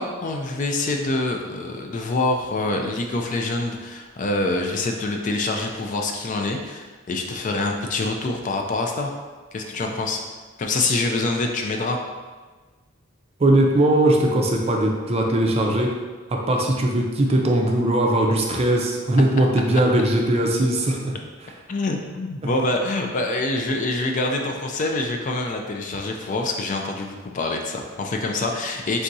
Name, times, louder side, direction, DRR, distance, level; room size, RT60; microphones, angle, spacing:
voice 1, 0.0-9.1 9.5-10.2 10.6-12.0 21.7-29.0, left 2 dB, 40° left, 2 dB, 0.4 m, -25 dB
voice 2, 13.4-15.9 16.3-21.1, right 1 dB, 30° right, 1 dB, 0.5 m, -20 dB
4.2 x 3.5 x 2.6 m, 1.4 s
head